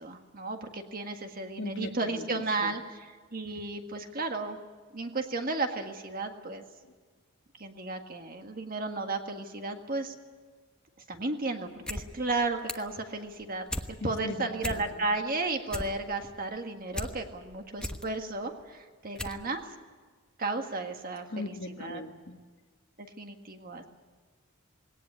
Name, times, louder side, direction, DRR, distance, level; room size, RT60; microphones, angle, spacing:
voice 1, 0.0-4.6 4.9-6.6 7.6-10.1 11.1-19.6 20.4-22.0 23.0-23.8, right 3 dB, 45° right, 5 dB, 1.8 m, -34 dB
voice 2, 1.6-2.2 2.6-2.7 14.0-14.5 14.9-15.1 21.3-22.4, left 2 dB, 60° left, 4 dB, 1.7 m, -39 dB
sound 1, 11.7-12.1 12.3-13.0 13.3-13.9 14.3-14.4 14.6-15.2 15.5-17.1 17.5-18.0 18.6-18.7 19.2-19.4 19.7-19.8, left 1 dB, 5° left, 1.1 m, -36 dB
19.5 x 18.5 x 9.7 m, 1.5 s
head